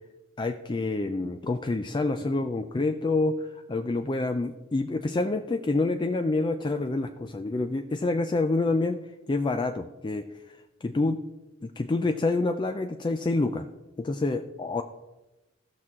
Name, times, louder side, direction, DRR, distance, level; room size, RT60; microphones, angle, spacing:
voice 1, 0.4-9.0 9.3-10.2 10.8-11.2 11.6-13.7 14.0-14.8, left 2 dB, 25° left, 6 dB, 0.4 m, -27 dB
16.0 x 6.0 x 3.6 m, 1.1 s
head